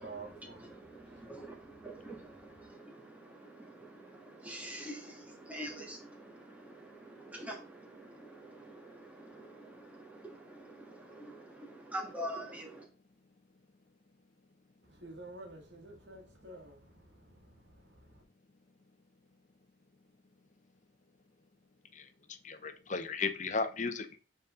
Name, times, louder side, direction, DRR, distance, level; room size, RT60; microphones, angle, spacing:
voice 1, 0.0-2.7 14.8-18.2, right 2 dB, 65° right, 2.0 m, -51 dB
voice 2, 0.7-12.8, right 1 dB, 10° right, 1.7 m, -46 dB
voice 3, 22.4-24.2, left 4 dB, 40° left, 0.7 m, -35 dB
8.0 x 4.1 x 3.7 m
head